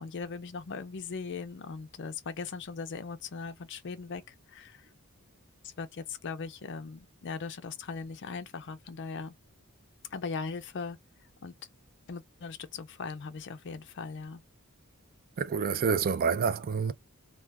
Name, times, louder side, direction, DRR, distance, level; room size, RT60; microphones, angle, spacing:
voice 1, 0.0-4.9 5.6-9.3 10.1-11.0 11.4-11.5 12.1-14.4, left 4 dB, 55° left, 0.5 m, -39 dB
voice 2, 15.4-16.9, right 6 dB, 40° right, 0.3 m, -28 dB
2.3 x 2.3 x 3.2 m
head